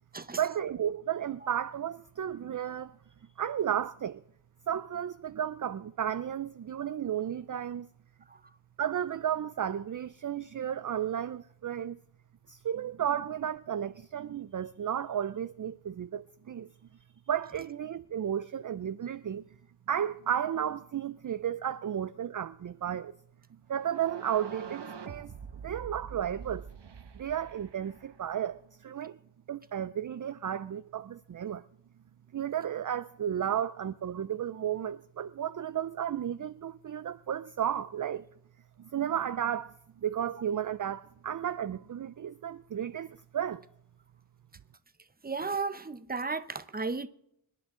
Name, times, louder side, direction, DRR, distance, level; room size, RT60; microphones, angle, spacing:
voice 1, 0.4-3.0 3.4-4.2 4.7-7.9 8.8-12.0 12.5-16.7 17.3-19.4 19.9-23.1 23.7-25.3 25.6-26.7 27.1-29.2 29.5-31.6 32.3-38.2 38.8-43.6, right 9 dB, 45° right, 0.4 m, -33 dB
rising Hit, 23.7-28.6, right 6 dB, 60° right, 1.1 m, -45 dB
voice 2, 45.2-47.1, right 4 dB, 20° right, 0.8 m, -34 dB
26.5 x 10.5 x 3.7 m
wide cardioid pair, 85°, 47 cm